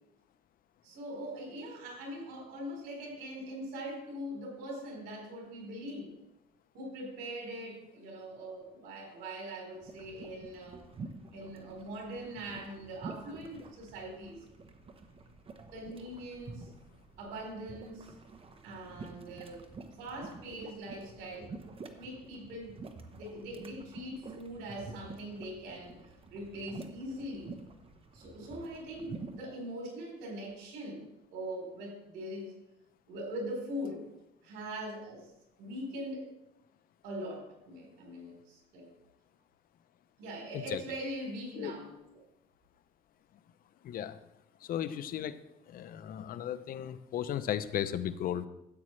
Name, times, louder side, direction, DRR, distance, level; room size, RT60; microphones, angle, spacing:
voice 1, 0.8-6.1 6.7-10.8 11.3-14.4 15.7-16.7 17.2-18.1 18.6-19.6 20.0-21.6 22.0-22.8 23.1-26.0 26.3-27.6 28.1-32.6 33.1-34.0 34.4-35.3 35.6-36.3 37.0-38.9 40.2-41.9, equal, 90° right, 0 dB, 4.1 m, -42 dB
sound 1, 9.8-29.4, right 4 dB, 35° right, 1.0 m, -48 dB
voice 2, 43.8-44.2 44.6-45.4 45.7-48.5, left 10 dB, 60° left, 13 dB, 0.7 m, -35 dB
13.5 x 8.6 x 3.3 m, 0.87 s
cardioid pair, 110°, 17 cm